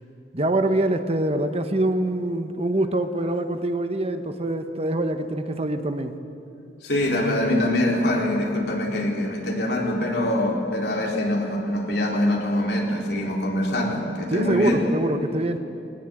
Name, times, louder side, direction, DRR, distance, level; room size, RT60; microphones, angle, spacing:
voice 1, 0.3-6.2 14.3-15.6, right 1 dB, 35° right, 8 dB, 1.1 m, -24 dB
voice 2, 6.8-14.8, left 1 dB, 65° left, -1 dB, 4.1 m, -24 dB
21.5 x 20.0 x 8.9 m, 2.8 s
head